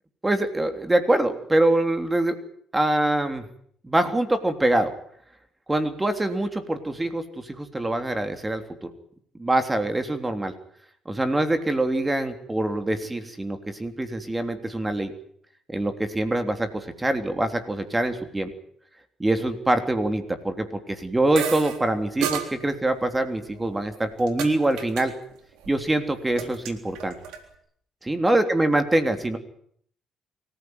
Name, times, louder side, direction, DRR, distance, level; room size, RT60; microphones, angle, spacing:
voice 1, 0.2-2.4 2.7-3.4 3.8-4.9 5.7-8.9 9.4-10.5 11.0-15.1 15.7-18.5 19.2-25.1 25.7-27.1 28.0-29.4, right 1 dB, 20° right, 7 dB, 3.3 m, -24 dB
sound 1, 21.4-21.8 22.2-22.5 23.5-24.5 24.8-25.1 25.3-25.8 26.1-27.4, right 8 dB, 80° right, 3.7 m, -31 dB
24.5 x 15.5 x 9.6 m, 0.65 s
hypercardioid pair, 55°, 0 cm